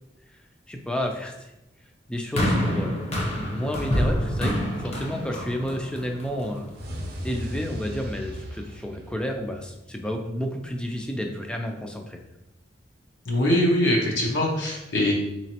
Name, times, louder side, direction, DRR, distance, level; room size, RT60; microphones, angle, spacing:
voice 1, 0.7-1.5 2.1-3.0 3.3-6.7 7.2-12.2, equal, 5° left, 2 dB, 0.3 m, -31 dB
sound 1, 2.4-6.7 7.5-7.6, equal, 35° left, 0.7 m, -27 dB
sound 2, 6.7-9.9, equal, 55° right, 0.6 m, -36 dB
voice 2, 13.3-15.1, left 1 dB, 75° left, -2 dB, 0.8 m, -22 dB
3.9 x 3.0 x 2.8 m, 0.93 s
head